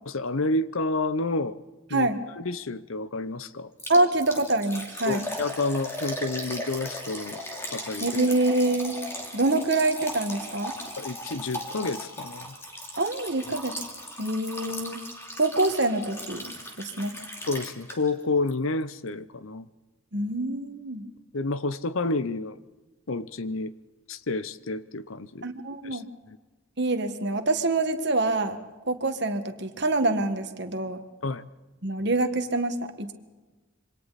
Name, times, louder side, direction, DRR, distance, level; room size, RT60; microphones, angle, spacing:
voice 1, 0.1-1.6 1.9-2.1 2.4-3.7 5.1-7.4 7.7-8.1 11.0-12.5 17.5-19.7 21.3-22.6 23.1-23.7 24.1-25.5 25.8-26.0 26.3-26.4 31.2-31.4, left 3 dB, 70° left, 15 dB, 0.8 m, -29 dB
Liquid, 3.8-18.2 18.5-18.6 19.1-19.2, left 1 dB, 10° left, 2.6 m, -37 dB
voice 2, 3.9-5.2 8.0-9.0 9.3-10.7 13.0-13.7 14.2-15.0 15.4-17.1 20.1-21.0 25.4-26.0 26.8-28.6 28.9-31.0 31.8-33.1, right 2 dB, 50° right, 7 dB, 1.7 m, -25 dB
27.0 x 24.5 x 4.2 m, 1.2 s
head